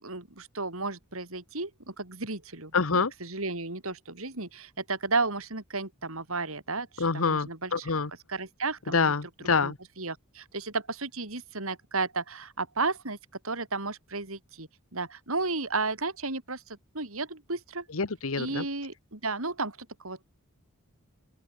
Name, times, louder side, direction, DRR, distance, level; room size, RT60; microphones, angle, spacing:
voice 1, 0.0-7.9 8.3-9.1 9.6-13.2 13.4-17.8 18.4-20.2, right 3 dB, 75° right, 4.7 m, -33 dB
voice 2, 2.7-3.1 7.0-8.1 8.9-9.8 17.9-18.6, left 4 dB, 70° left, 1.1 m, -26 dB
open air
head